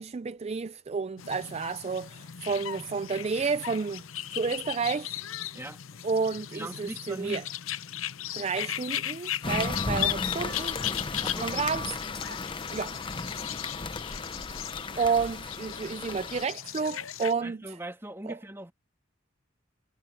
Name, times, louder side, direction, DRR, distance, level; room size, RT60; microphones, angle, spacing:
voice 1, 0.0-4.0 4.3-5.2 6.0-7.4 8.3-10.8 11.4-12.0 12.7-12.9 15.0-17.6 18.3-18.4, right 5 dB, 30° right, 0.3 m, -30 dB
sound 1, 1.2-17.3, left 12 dB, 75° left, 0.7 m, -37 dB
voice 2, 6.5-7.4 11.2-11.9 17.4-18.7, right 1 dB, 10° right, 2.3 m, -40 dB
sound 2, 9.4-16.4, left 3 dB, 25° left, 0.8 m, -35 dB
head